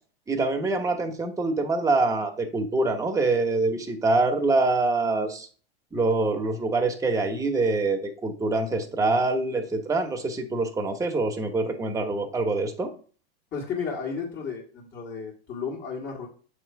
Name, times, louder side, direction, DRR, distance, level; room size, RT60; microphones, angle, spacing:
voice 1, 0.3-5.5 5.9-12.9, right 3 dB, 10° right, 3 dB, 0.9 m, -25 dB
voice 2, 13.5-16.3, left 5 dB, 35° left, -6 dB, 1.9 m, -33 dB
7.4 x 3.1 x 4.6 m, 0.41 s
supercardioid pair, 120°, 31 cm